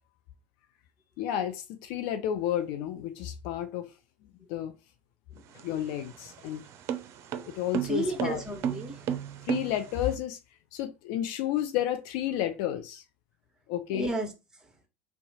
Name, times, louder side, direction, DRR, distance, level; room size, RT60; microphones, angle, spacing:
voice 1, 1.2-3.9 4.5-4.7 5.6-6.6 7.4-8.4 9.4-10.4 10.7-13.0 13.7-14.1, left 11 dB, 70° left, 0.5 m, -31 dB
sound 1, 5.4-10.1, right 8 dB, 50° right, 0.5 m, -34 dB
voice 2, 7.8-9.2 13.9-14.8, right 1 dB, 10° right, 1.4 m, -34 dB
2.8 x 2.3 x 4.1 m
hypercardioid pair, 85°, 6 cm